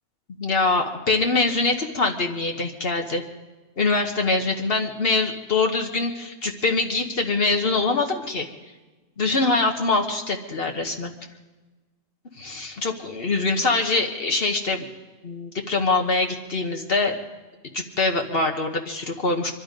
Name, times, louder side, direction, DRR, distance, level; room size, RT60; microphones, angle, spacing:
voice 1, 0.4-3.2 3.8-8.5 9.2-11.1 12.4-14.9 15.2-17.1 17.7-19.5, left 3 dB, 60° left, 3 dB, 1.4 m, -24 dB
24.0 x 11.5 x 5.2 m, 1.2 s
omnidirectional pair, 1.1 m